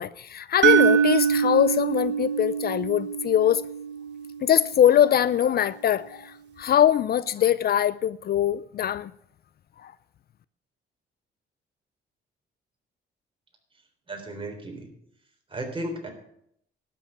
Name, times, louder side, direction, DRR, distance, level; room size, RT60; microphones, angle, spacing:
voice 1, 0.0-3.6 4.4-9.1 9.8-9.9, left 10 dB, 50° left, 0.4 m, -22 dB
sound 1, 0.6-4.7, right 8 dB, 65° right, 1.1 m, -24 dB
voice 2, 14.1-14.9 15.5-16.1, right 1 dB, 25° right, 3.7 m, -34 dB
12.0 x 6.9 x 8.8 m
cardioid pair, 90°, 20 cm